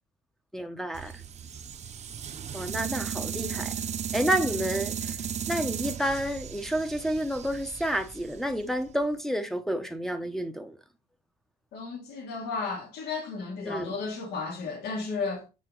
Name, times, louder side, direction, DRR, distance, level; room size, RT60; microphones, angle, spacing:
voice 1, 0.5-1.2 2.5-3.7 4.1-5.2 5.5-10.8 13.7-14.0, equal, ahead, 0.8 m, -30 dB
sound 1, 0.9-9.0, right 8 dB, 40° right, 0.8 m, -35 dB
voice 2, 11.7-15.5, left 4 dB, 75° left, 2.3 m, -33 dB
6.4 x 3.8 x 3.9 m
cardioid pair, 110°, 17 cm